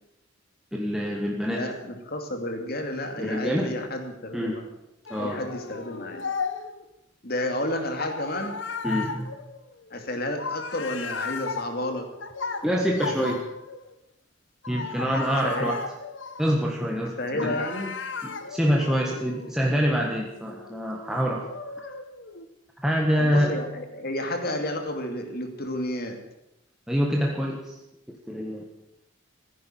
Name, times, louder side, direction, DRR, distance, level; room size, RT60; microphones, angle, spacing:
voice 1, 0.7-1.7 3.2-3.8 4.3-4.6 5.1-5.4 8.8-9.4 12.6-13.5 14.7-15.8 16.4-17.6 18.2-21.5 22.8-23.6 26.9-27.7 28.1-28.7, equal, 5° right, -1 dB, 1.6 m, -26 dB
voice 2, 1.5-4.6 5.2-6.2 7.2-8.6 9.9-12.0 15.4-15.7 17.2-17.9 23.2-26.2, left 1 dB, 50° left, 5 dB, 2.6 m, -31 dB
sound 1, 5.1-6.8 8.0-13.9 14.6-17.0 17.4-22.5, left 4 dB, 65° left, 1.4 m, -36 dB
15.5 x 10.0 x 9.2 m, 0.88 s
head